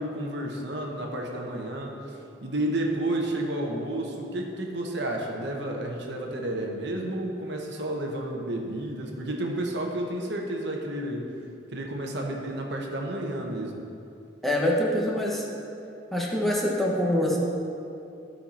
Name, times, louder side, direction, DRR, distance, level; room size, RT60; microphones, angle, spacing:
voice 1, 0.0-11.3 11.7-13.8, right 1 dB, 65° right, 1 dB, 1.1 m, -31 dB
voice 2, 14.4-15.4 16.1-17.4, left 1 dB, ahead, -4 dB, 1.2 m, -25 dB
14.0 x 5.7 x 4.3 m, 2.7 s
head